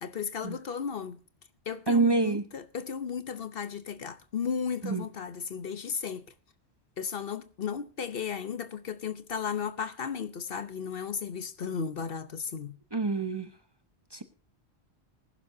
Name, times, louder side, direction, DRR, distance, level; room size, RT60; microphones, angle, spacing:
voice 1, 0.0-1.2 1.7-6.3 7.0-12.8, left 6 dB, 60° left, 1.1 m, -35 dB
voice 2, 1.9-2.4 4.8-5.0 12.9-13.5 14.1-14.2, right 3 dB, 25° right, 0.9 m, -26 dB
19.5 x 11.5 x 2.7 m
omnidirectional pair, 1.1 m